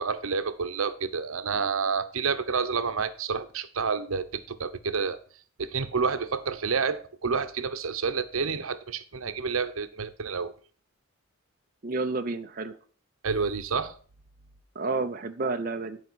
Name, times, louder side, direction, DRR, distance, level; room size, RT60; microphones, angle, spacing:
voice 1, 0.0-5.2 5.6-10.5 13.2-13.9, right 5 dB, 85° right, 10 dB, 0.8 m, -29 dB
voice 2, 11.8-12.8 14.8-16.0, right 3 dB, 40° right, 6 dB, 0.6 m, -30 dB
11.0 x 5.0 x 6.2 m, 0.43 s
head